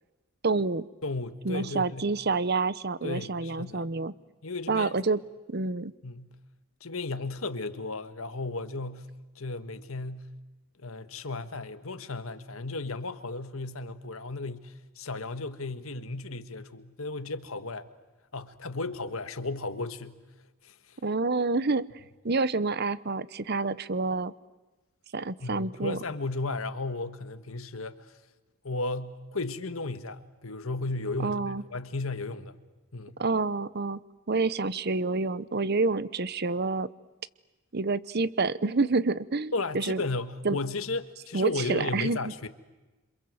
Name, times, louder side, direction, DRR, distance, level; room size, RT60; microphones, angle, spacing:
voice 1, 0.4-0.8 1.4-4.1 4.7-5.2 5.5-5.9 21.0-21.9 22.2-24.3 25.1-26.0 31.2-31.6 33.2-34.0 34.3-36.9 37.7-40.0 40.4-40.6 41.3-42.5, right 3 dB, 50° right, 0.9 m, -28 dB
voice 2, 1.0-2.1 3.0-3.9 4.4-5.0 6.0-6.4 6.8-9.1 9.3-10.3 10.8-17.9 18.3-20.2 20.6-21.0 25.4-28.1 28.6-31.4 31.7-32.6 32.9-33.1 39.5-42.5, left 3 dB, 85° left, 1.6 m, -34 dB
28.5 x 26.5 x 7.9 m
head